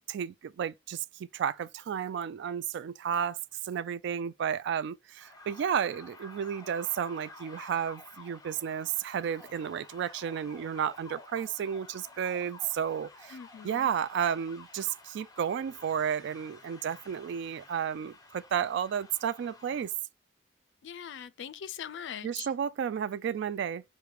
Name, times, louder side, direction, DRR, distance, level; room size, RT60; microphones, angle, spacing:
voice 1, 0.1-3.4 3.6-13.3 13.6-19.9 22.2-23.8, right 8 dB, 65° right, 0.3 m, -32 dB
sound 1, 5.2-20.0, left 3 dB, 20° left, 0.7 m, -52 dB
voice 2, 13.3-13.9 20.8-22.5, left 8 dB, 65° left, 0.4 m, -42 dB
4.9 x 2.1 x 4.7 m
head